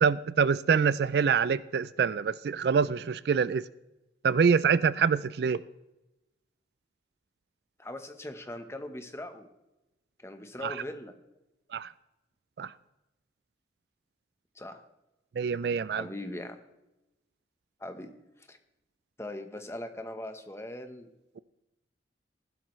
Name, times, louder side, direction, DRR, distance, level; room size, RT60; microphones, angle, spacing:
voice 1, 0.0-3.6 4.2-5.6 10.6-10.7 11.7-11.9 12.6-12.7 15.4-16.0, right 6 dB, 60° right, 18 dB, 0.3 m, -25 dB
voice 2, 7.8-9.5 10.2-11.1 14.5-14.8 15.9-16.6 17.8-18.1 18.4-18.6 19.2-21.1, left 1 dB, 15° left, 7 dB, 1.0 m, -40 dB
15.0 x 12.5 x 3.2 m, 0.97 s
head